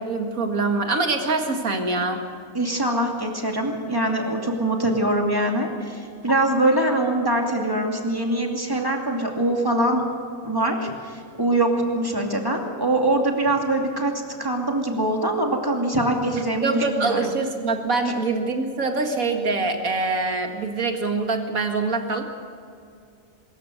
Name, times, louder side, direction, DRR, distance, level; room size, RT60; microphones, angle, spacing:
voice 1, 0.1-2.2 16.6-22.2, right 3 dB, 90° right, 4 dB, 2.4 m, -24 dB
voice 2, 2.5-10.0 10.4-14.1 14.4-17.3, right 1 dB, 15° right, 1 dB, 2.6 m, -23 dB
24.0 x 14.0 x 7.9 m, 2.4 s
omnidirectional pair, 1.4 m